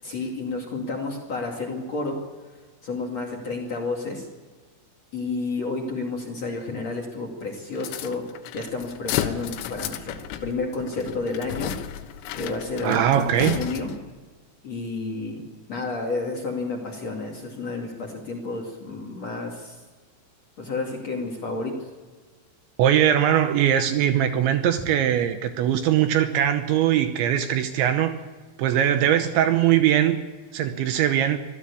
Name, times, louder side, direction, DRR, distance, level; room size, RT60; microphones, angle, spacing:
voice 1, 0.0-2.2 2.8-4.3 5.1-8.2 8.5-10.1 10.4-11.7 12.3-13.9 14.6-19.8 20.6-21.9, left 3 dB, 40° left, 0 dB, 2.7 m, -31 dB
sound 1, 7.8-14.1, left 11 dB, 80° left, 3.7 m, -33 dB
voice 2, 12.8-13.6 22.8-28.2 28.6-30.2 30.5-31.4, right 10 dB, 75° right, 8 dB, 3.0 m, -21 dB
25.0 x 16.0 x 8.5 m, 1.4 s
omnidirectional pair, 5.9 m